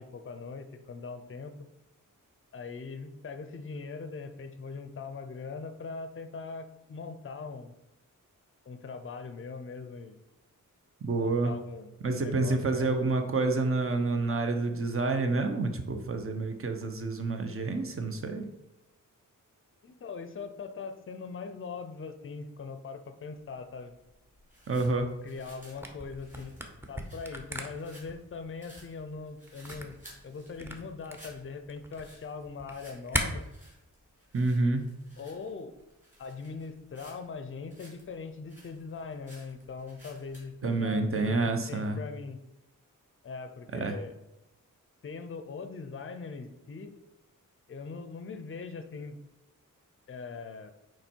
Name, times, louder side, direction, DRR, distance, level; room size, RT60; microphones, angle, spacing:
voice 1, 0.0-1.5 2.5-7.8 8.7-10.2 11.1-13.0 19.8-23.9 25.2-26.6 26.9-30.0 30.2-33.4 35.2-35.7 36.2-41.4 41.7-42.4 43.2-44.1 45.0-46.9 47.7-49.2 50.1-50.7, left 4 dB, 40° left, 9 dB, 0.5 m, -41 dB
voice 2, 11.0-11.5 12.0-18.5 24.7-25.1 34.3-34.8 40.6-42.0 43.7-44.0, right 3 dB, 40° right, 6 dB, 0.7 m, -28 dB
sound 1, 23.4-40.5, right 1 dB, 25° right, 2.6 m, -57 dB
Camera, 25.8-33.2, equal, 5° right, 0.6 m, -38 dB
8.7 x 3.1 x 4.5 m, 0.93 s
wide cardioid pair, 165°, 33 cm